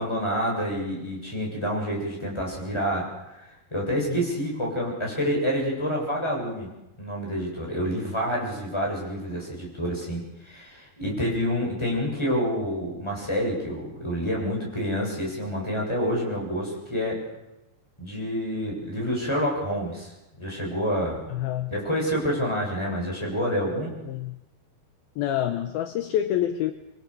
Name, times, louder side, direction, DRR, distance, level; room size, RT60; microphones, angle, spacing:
voice 1, 0.0-3.1 3.3-6.7 7.0-17.2 18.0-20.1 20.4-21.2 21.7-23.9, equal, 5° left, -2 dB, 7.4 m, -28 dB
voice 2, 3.9-4.3 11.0-11.4 21.3-21.7 24.1-24.4 25.2-26.7, left 11 dB, 70° left, 8 dB, 2.6 m, -28 dB
27.0 x 23.5 x 6.9 m, 0.95 s
omnidirectional pair, 5.0 m